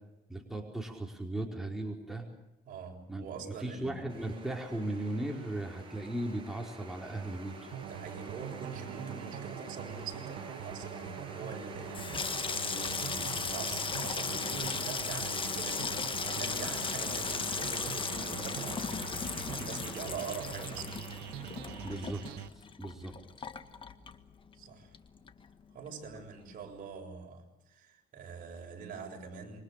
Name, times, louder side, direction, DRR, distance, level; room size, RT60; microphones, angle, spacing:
voice 1, 0.3-2.3 3.1-7.7 21.8-22.2 22.5-23.5, right 1 dB, ahead, 4.7 m, -37 dB
voice 2, 2.7-4.1 7.8-21.0 22.9-23.1 24.5-25.0 25.7-29.6, right 5 dB, 55° right, 7.4 m, -44 dB
sound 1, 4.1-21.9, right 2 dB, 30° right, 7.2 m, -47 dB
sound 2, 7.7-22.5, right 10 dB, 90° right, 1.3 m, -44 dB
Water tap faucet / Sink (filling or washing), 11.8-24.6 24.9-25.6 25.9-26.2, left 5 dB, 30° left, 1.7 m, -36 dB
27.5 x 24.0 x 6.8 m
cardioid pair, 110°, 17 cm